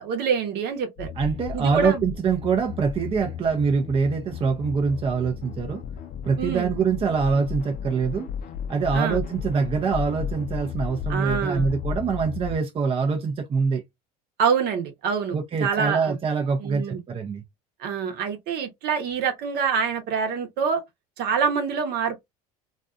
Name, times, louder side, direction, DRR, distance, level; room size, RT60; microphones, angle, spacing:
voice 1, 0.0-1.1 1.5-2.0 6.4-6.7 8.9-9.2 11.1-11.7 14.4-16.2 16.6-17.0 17.8-20.8 21.2-22.2, right 6 dB, 55° right, 0.9 m, -26 dB
sound 1, 1.0-12.6, left 8 dB, 45° left, 0.6 m, -34 dB
voice 2, 1.2-5.8 6.3-8.3 8.7-13.8 15.3-17.4, right 5 dB, 30° right, 0.6 m, -24 dB
2.5 x 2.3 x 2.4 m
hypercardioid pair, 85°, 19 cm